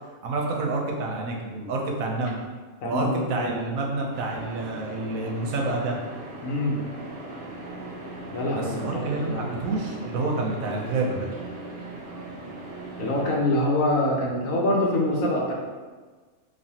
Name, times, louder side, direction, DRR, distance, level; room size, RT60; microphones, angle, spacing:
voice 1, 0.2-2.4 2.8-6.0 8.5-11.3, right 2 dB, 85° right, 0 dB, 1.1 m, -28 dB
voice 2, 2.8-3.6 6.4-6.8 8.3-9.4 13.0-15.5, left 1 dB, 80° left, -2 dB, 1.2 m, -25 dB
sound 1, 4.1-13.3, right 2 dB, 60° right, 0.7 m, -39 dB
4.2 x 2.7 x 2.8 m, 1.4 s
omnidirectional pair, 1.4 m